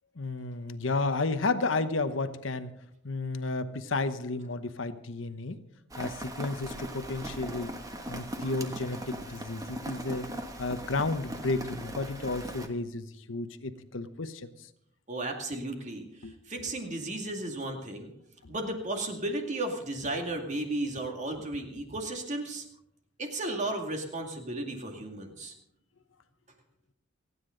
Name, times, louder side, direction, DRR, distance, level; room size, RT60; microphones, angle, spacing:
voice 1, 0.2-2.7 3.0-5.6 6.0-7.7 8.1-10.3 10.6-14.5 16.2-16.7 18.4-18.5, left 3 dB, 70° left, 10 dB, 1.0 m, -32 dB
Rain, 5.9-12.7, right 1 dB, 15° right, 1.3 m, -39 dB
voice 2, 15.1-18.1 18.5-22.6 23.2-25.5, right 2 dB, 35° right, 3 dB, 2.3 m, -34 dB
28.5 x 9.7 x 3.9 m, 0.74 s
head